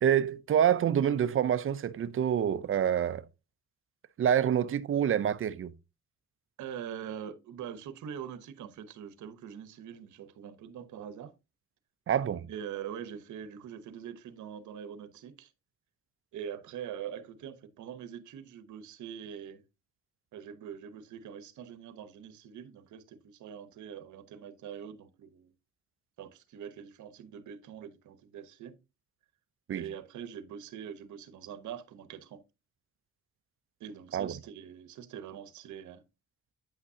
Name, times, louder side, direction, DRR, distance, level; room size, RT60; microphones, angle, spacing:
voice 1, 0.0-3.2 4.2-5.7 12.1-12.5 29.7-29.9 34.1-34.4, right 9 dB, 45° right, 0.6 m, -27 dB
voice 2, 6.6-11.3 12.5-15.5 16.3-19.6 20.3-25.5 26.2-28.7 29.7-32.4 33.8-36.0, right 8 dB, 75° right, 1.0 m, -43 dB
8.8 x 5.8 x 2.8 m
cardioid pair, 90°, 30 cm